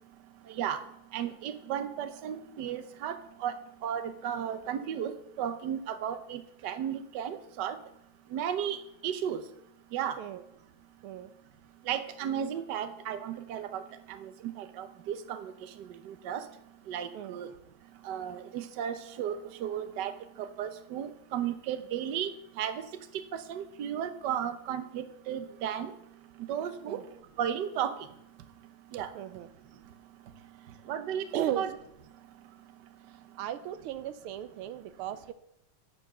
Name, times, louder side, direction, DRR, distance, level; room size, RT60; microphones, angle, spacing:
voice 1, 1.1-3.1 3.4-3.5 3.8-5.1 5.4-7.8 8.3-8.8 9.0-9.4 9.9-10.2 11.9-13.8 14.2-14.3 14.6-15.5 16.1-16.4 16.9-17.5 18.1-20.1 20.4-22.3 22.6-22.8 23.3-25.9 26.5-27.0 27.4-27.9 28.9-29.1 30.9-31.7, right 9 dB, 60° right, 10 dB, 1.4 m, -34 dB
voice 2, 29.1-29.5 31.3-31.6 33.4-35.3, right 11 dB, 85° right, 12 dB, 1.5 m, -36 dB
8.8 x 8.2 x 6.1 m, 0.78 s
omnidirectional pair, 2.3 m